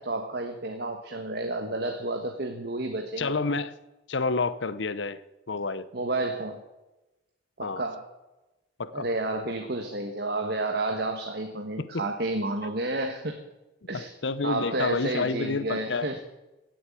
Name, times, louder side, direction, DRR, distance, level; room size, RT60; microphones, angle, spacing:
voice 1, 0.0-3.3 5.9-6.6 7.6-8.1 8.9-13.5 13.9-14.1 14.4-16.2, right 2 dB, 55° right, 4 dB, 1.3 m, -31 dB
voice 2, 3.2-3.8 4.1-5.2 5.5-5.9 7.6-7.8 8.8-9.1 11.8-12.0 13.9-16.1, left 4 dB, 65° left, 15 dB, 0.8 m, -29 dB
16.5 x 7.8 x 8.4 m, 1.0 s
head